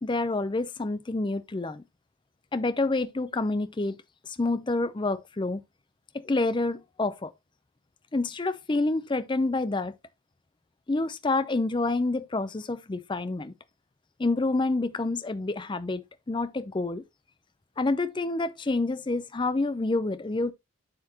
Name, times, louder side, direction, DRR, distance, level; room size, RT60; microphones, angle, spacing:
voice 1, 0.0-1.8 2.5-4.0 4.3-5.6 6.1-7.3 8.1-9.9 10.9-13.5 14.2-17.0 17.8-20.5, left 2 dB, 20° left, 0.5 m, -28 dB
7.7 x 6.8 x 2.8 m
head